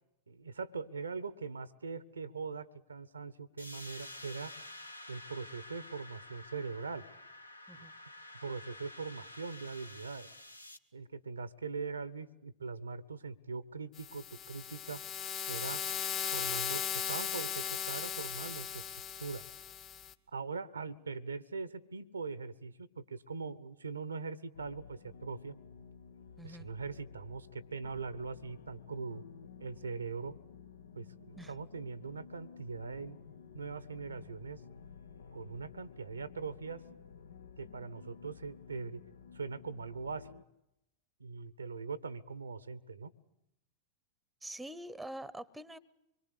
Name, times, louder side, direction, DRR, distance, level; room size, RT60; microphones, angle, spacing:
voice 1, 0.3-4.5 5.1-7.0 7.7-7.9 8.4-10.3 10.9-15.0 15.5-18.8 19.2-19.4 20.3-25.5 26.4-29.2 29.6-30.3 31.0-33.2 33.5-34.6 35.3-36.8 37.6-39.0 39.3-40.3 41.2-43.1, right 4 dB, 75° right, 18 dB, 1.1 m, -41 dB
sound 1, 3.6-10.8, left 1 dB, 85° left, 1.3 m, -50 dB
sound 2, 14.0-20.1, left 8 dB, 30° left, 1.4 m, -37 dB
sound 3, 24.5-40.4, left 6 dB, 70° left, 1.0 m, -53 dB
voice 2, 44.4-45.8, right 1 dB, 5° right, 21 dB, 1.0 m, -45 dB
25.5 x 23.0 x 8.4 m, 0.86 s
figure-of-eight pair, 90°, 0 cm